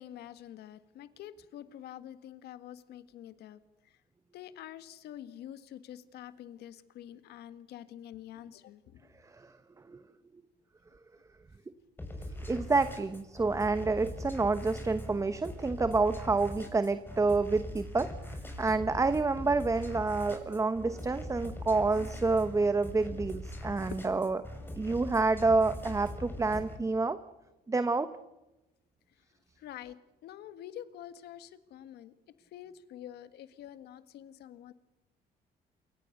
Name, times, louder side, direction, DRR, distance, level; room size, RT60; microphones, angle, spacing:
voice 1, 0.0-3.6 4.3-9.1 21.7-22.1 23.1-23.2 23.8-24.0 26.5-26.6 29.6-32.1 32.5-34.7, left 11 dB, 75° left, 12 dB, 1.7 m, -47 dB
sound 1, 12.0-26.8, left 1 dB, 10° left, 6.0 m, -42 dB
voice 2, 12.5-18.1 18.6-24.4 24.7-27.2 27.7-28.1, right 3 dB, 20° right, 11 dB, 1.1 m, -28 dB
28.0 x 24.0 x 6.7 m, 0.99 s
cardioid pair, 110°, 17 cm